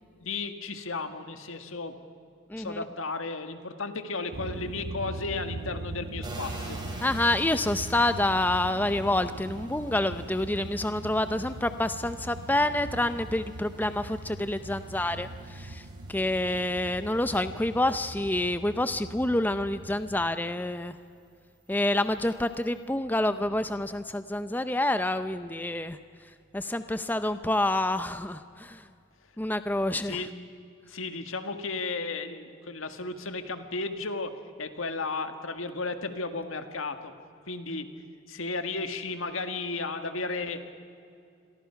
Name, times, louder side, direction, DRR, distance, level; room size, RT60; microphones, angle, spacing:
voice 1, 0.2-1.9 2.6-6.8 30.0-30.3 30.9-34.3 34.6-37.1 37.5-37.9 38.3-40.7, left 3 dB, 80° left, 8 dB, 1.8 m, -34 dB
voice 2, 2.5-2.8 7.0-20.9 21.7-26.0 26.5-28.9 29.4-30.2, left 1 dB, 10° left, 11 dB, 0.6 m, -28 dB
sound 1, 4.3-20.3, right 2 dB, 85° right, 1.0 m, -41 dB
sound 2, 6.2-19.6 20.0-22.9, right 1 dB, 20° right, 4.0 m, -49 dB
28.5 x 22.5 x 5.8 m, 2.4 s
head